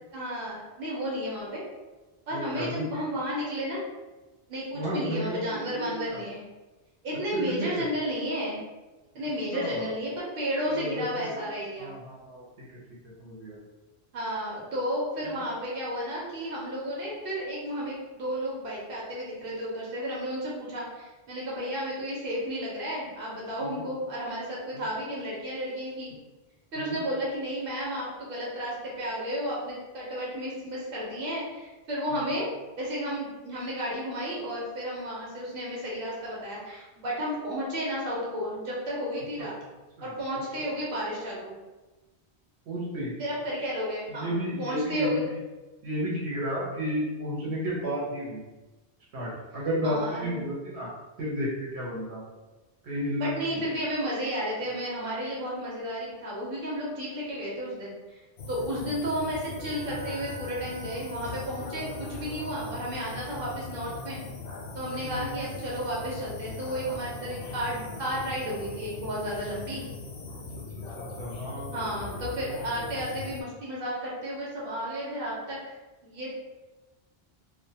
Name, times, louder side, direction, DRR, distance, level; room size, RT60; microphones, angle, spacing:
voice 1, 0.1-1.6 2.3-3.8 4.5-6.4 7.0-8.6 9.1-11.9 14.1-26.1 26.7-32.5 32.8-39.5 40.0-41.5 43.2-44.3 44.6-45.2 49.8-50.4 53.2-58.2 58.5-64.2 64.7-69.8 71.7-75.7 76.0-76.3, equal, 60° right, -5 dB, 1.0 m, -32 dB
voice 2, 2.3-2.8 4.7-6.2 7.3-7.8 9.5-9.9 10.7-11.4 11.8-12.6 13.2-13.6 23.6-23.8 24.7-24.8 26.8-27.0 32.1-32.3 39.4-39.5 40.0-40.1 42.7-43.2 44.1-45.1 45.8-48.4 49.1-50.9 51.2-52.2 52.8-53.3 65.0-65.3 71.2-72.3, equal, 85° right, -6 dB, 1.1 m, -32 dB
sound 1, 58.4-73.4, left 3 dB, 80° left, 0.9 m, -40 dB
2.4 x 2.2 x 2.7 m, 1.1 s
omnidirectional pair, 1.1 m